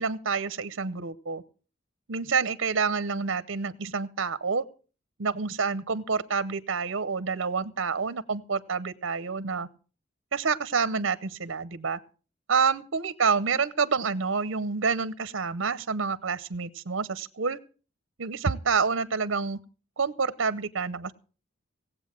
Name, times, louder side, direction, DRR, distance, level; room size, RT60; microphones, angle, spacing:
voice 1, 0.0-1.4 2.1-4.6 5.2-9.7 10.3-12.0 12.5-17.6 18.2-19.6 20.0-21.1, right 5 dB, 75° right, 15 dB, 0.7 m, -28 dB
18.0 x 8.0 x 7.3 m, 0.39 s
head